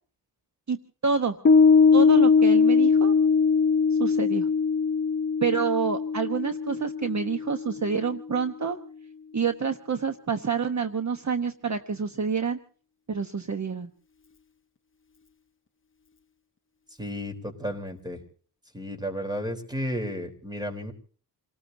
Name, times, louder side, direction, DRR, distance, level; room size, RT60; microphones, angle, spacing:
voice 1, 1.0-1.4 1.9-3.2 3.9-4.5 5.4-8.8 9.3-12.6 13.1-13.9, right 5 dB, 45° right, 7 dB, 1.1 m, -27 dB
Piano, 1.5-8.2, left 5 dB, 30° left, 0.7 m, -21 dB
voice 2, 17.0-18.2 18.7-20.9, equal, 10° right, 6 dB, 3.7 m, -33 dB
28.5 x 18.5 x 2.7 m, 0.43 s
wide cardioid pair, 95°, 40 cm